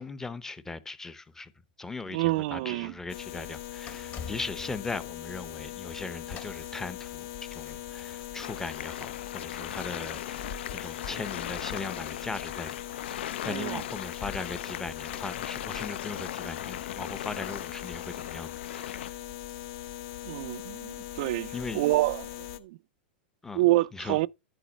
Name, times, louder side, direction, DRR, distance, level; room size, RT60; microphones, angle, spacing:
voice 1, 0.0-1.5 1.8-7.3 7.5-12.8 13.1-19.2 21.5-21.8 23.4-23.6 23.9-24.2, left 3 dB, 10° left, 0.7 m, -39 dB
voice 2, 2.1-2.9 13.5-13.8 20.2-22.8 23.5-24.3, right 18 dB, 55° right, 0.3 m, -28 dB
sound 1, 3.1-22.6, left 12 dB, 50° left, 1.0 m, -40 dB
sound 2, 3.6-19.8 20.4-20.5, left 7 dB, 30° left, 1.3 m, -52 dB
sound 3, 8.4-19.1, left 11 dB, 75° left, 0.5 m, -39 dB
10.5 x 4.0 x 5.2 m
hypercardioid pair, 135°, 6 cm